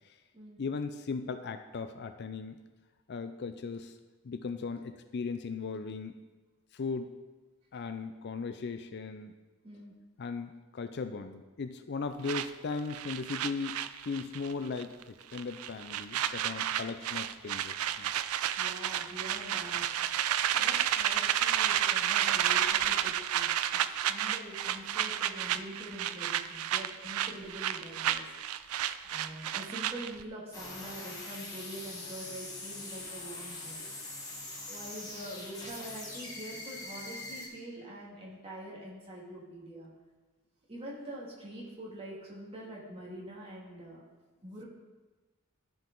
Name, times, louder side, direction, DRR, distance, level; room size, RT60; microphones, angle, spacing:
voice 1, 0.6-2.6 3.1-3.9 4.2-6.2 6.7-7.2 7.7-9.3 10.2-18.1, left 4 dB, 50° left, 9 dB, 0.4 m, -37 dB
sound 1, 12.3-14.5 14.8-15.0 15.3-30.2, right 11 dB, 80° right, 0.4 m, -31 dB
voice 2, 18.5-19.9 20.5-23.5 23.9-28.4 29.0-33.9 34.7-39.9 40.7-44.0 44.4-44.7, right 1 dB, 25° right, -5 dB, 2.2 m, -45 dB
sound 2, 30.5-37.5, left 2 dB, 15° left, 1.7 m, -43 dB
13.5 x 4.8 x 3.8 m, 1.2 s
head